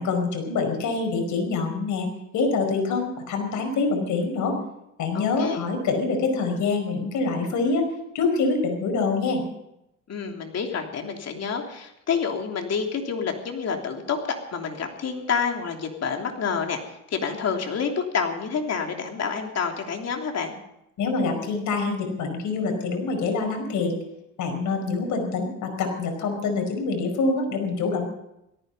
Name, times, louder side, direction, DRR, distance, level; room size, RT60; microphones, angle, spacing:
voice 1, 0.0-2.1 2.3-4.6 5.0-7.9 8.1-9.4 21.0-23.9 24.4-28.1, left 4 dB, 80° left, 4 dB, 5.1 m, -25 dB
voice 2, 5.1-5.7 10.1-20.5, left 6 dB, 55° left, 3 dB, 3.2 m, -28 dB
17.5 x 14.5 x 5.6 m, 0.84 s
cardioid pair, 90°, 30 cm